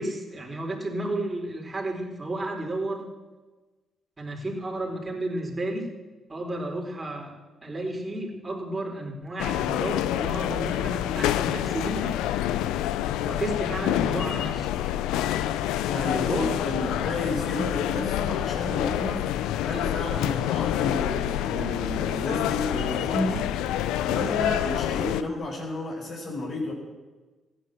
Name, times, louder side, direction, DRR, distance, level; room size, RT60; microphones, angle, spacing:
voice 1, 0.0-3.1 4.2-5.9 6.3-7.3 7.6-12.2 13.2-14.7 16.3-16.9, right 1 dB, 30° right, 0 dB, 4.3 m, -32 dB
sound 1, 9.4-25.2, left 12 dB, 80° left, 0.6 m, -27 dB
voice 2, 15.9-19.2 19.6-23.4 24.0-26.7, left 2 dB, 60° left, -2 dB, 5.1 m, -31 dB
15.0 x 10.0 x 7.7 m, 1.3 s
hypercardioid pair, 50°, 0 cm